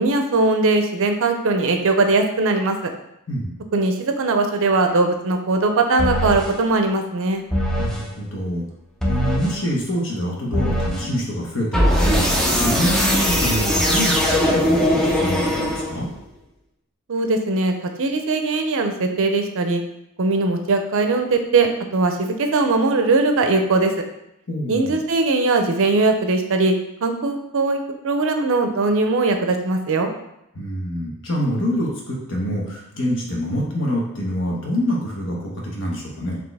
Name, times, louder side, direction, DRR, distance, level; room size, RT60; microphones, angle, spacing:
voice 1, 0.0-2.8 3.7-7.4 17.1-19.8 20.2-23.9 24.7-26.7 27.0-27.8 28.0-30.1, right 3 dB, 60° right, 5 dB, 0.5 m, -20 dB
sound 1, 6.0-6.5 7.5-8.1 9.0-9.6 10.5-11.1 11.7-16.1, equal, ahead, 0.5 m, -20 dB
voice 2, 7.8-8.6 9.0-16.1 24.5-25.0 30.5-36.4, equal, 60° left, -2 dB, 1.1 m, -26 dB
4.2 x 2.9 x 3.4 m, 0.82 s
head